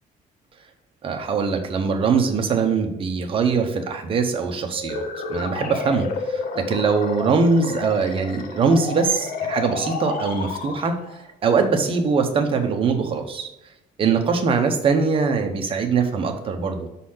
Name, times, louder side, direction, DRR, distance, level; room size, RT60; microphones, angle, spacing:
voice 1, 1.0-5.0 5.3-10.9 11.4-13.5 14.0-16.9, right 5 dB, 35° right, 4 dB, 1.0 m, -22 dB
sound 1, 4.7-11.2, left 4 dB, 65° left, 1.1 m, -30 dB
6.3 x 4.2 x 5.6 m, 0.91 s
cardioid pair, 160°, 15 cm